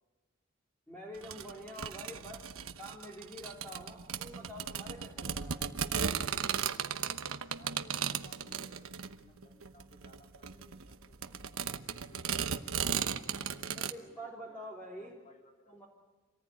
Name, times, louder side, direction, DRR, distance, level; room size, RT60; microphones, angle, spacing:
voice 1, 0.9-5.7 13.8-15.1 15.7-15.9, equal, 10° left, -4 dB, 3.6 m, -47 dB
sound 1, 1.2-13.9, right 7 dB, 75° right, 1.1 m, -36 dB
voice 2, 7.5-11.3 12.1-12.5 13.3-15.7, left 1 dB, 35° left, 1 dB, 3.8 m, -61 dB
27.5 x 18.5 x 9.3 m, 1.2 s
head